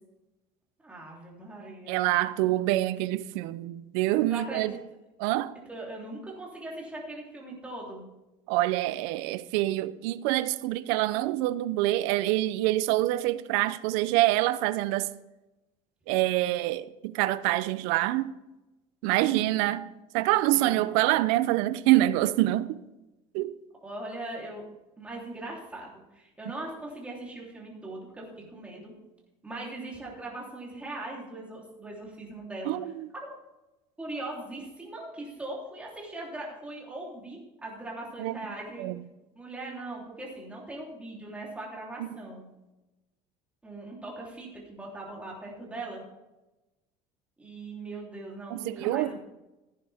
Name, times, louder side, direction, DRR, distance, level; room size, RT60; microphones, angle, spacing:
voice 1, 0.8-2.0 2.4-2.5 4.3-4.8 5.7-8.1 19.0-19.6 20.5-21.5 23.8-24.6 25.0-28.9 29.4-32.8 34.0-38.9 39.3-42.5 43.6-46.0 47.4-49.2, right 2 dB, 10° right, 3.3 m, -40 dB
voice 2, 1.9-4.8 5.2-5.5 8.5-15.1 16.1-18.3 19.0-22.8 23.3-23.5 32.7-33.1 38.2-38.4 38.8-39.0 48.5-49.2, right 16 dB, 90° right, 0.6 m, -26 dB
15.0 x 9.7 x 3.5 m
cardioid pair, 155°, 13 cm